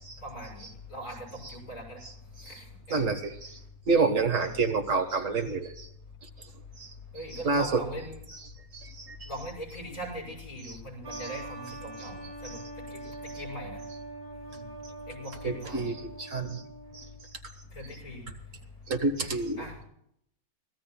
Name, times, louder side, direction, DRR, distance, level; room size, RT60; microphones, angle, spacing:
voice 1, 0.2-0.6 0.9-2.0 2.5-2.6 2.9-3.1 7.1-8.2 9.3-12.1 12.4-12.6 12.9-13.0 13.4-13.8 15.1-15.8 17.7-18.2 19.2-19.3 19.6-19.7, equal, 70° left, -2 dB, 6.1 m, -40 dB
voice 2, 2.9-3.5 3.9-5.9 6.8-6.9 7.3-7.8 8.3-8.5 8.7-9.3 10.6-10.8 11.1-11.3 12.0-12.1 12.4-12.6 15.4-16.6 16.9-17.0 18.9-19.7, right 4 dB, 60° right, 6 dB, 1.8 m, -29 dB
sound 1, 11.0-17.3, right 2 dB, 15° right, 2.0 m, -43 dB
24.5 x 17.0 x 2.3 m, 0.71 s
omnidirectional pair, 1.5 m